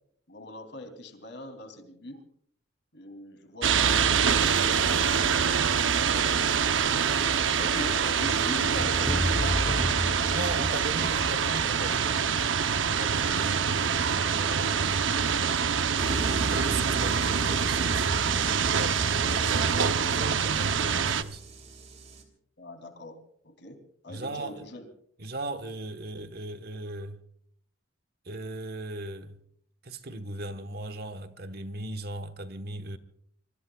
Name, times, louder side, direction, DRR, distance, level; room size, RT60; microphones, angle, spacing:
voice 1, 0.3-2.2 2.9-5.2 6.7-11.0 19.2-19.8 22.6-24.9, left 1 dB, 60° left, 3.1 m, -42 dB
sound 1, 3.6-21.2, right 7 dB, 70° right, 0.8 m, -25 dB
sound 2, 8.8-11.1, equal, 5° left, 0.9 m, -30 dB
voice 2, 10.2-15.1 16.4-18.2 18.4-21.4 24.1-24.6 25.2-27.2 28.2-29.4 29.8-33.0, right 2 dB, 50° right, 1.3 m, -38 dB
sound 3, 16.0-22.2, right 2 dB, 35° right, 3.1 m, -37 dB
26.0 x 23.5 x 2.4 m
head